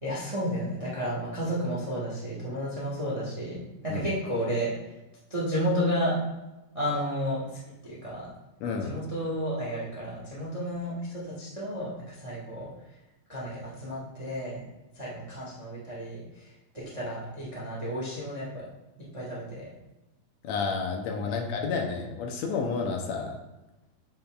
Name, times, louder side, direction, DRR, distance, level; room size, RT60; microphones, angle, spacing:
voice 1, 0.0-4.7 5.3-6.2 6.7-7.6 7.8-8.3 8.8-12.7 13.3-14.6 14.9-18.7 19.1-19.7 21.2-21.6, equal, 25° right, -6 dB, 0.6 m, -32 dB
voice 2, 8.6-9.0 20.4-23.4, left 5 dB, 75° left, 2 dB, 1.8 m, -30 dB
7.6 x 5.5 x 2.3 m, 1.0 s
omnidirectional pair, 3.4 m